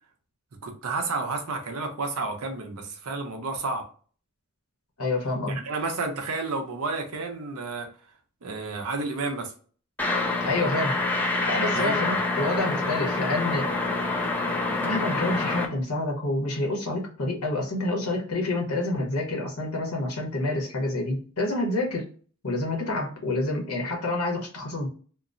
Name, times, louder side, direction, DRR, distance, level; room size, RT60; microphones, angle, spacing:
voice 1, 0.6-3.9 5.5-7.9 8.4-9.5 11.7-12.0 14.5-14.6, right 3 dB, 70° right, 3 dB, 0.7 m, -31 dB
voice 2, 5.0-5.6 10.4-11.0 11.5-13.7 14.8-22.1 22.4-24.9, left 2 dB, 75° left, 0 dB, 1.0 m, -28 dB
sound 1, 10.0-15.7, left 2 dB, 10° left, 0.4 m, -26 dB
2.9 x 2.0 x 2.5 m, 0.41 s
head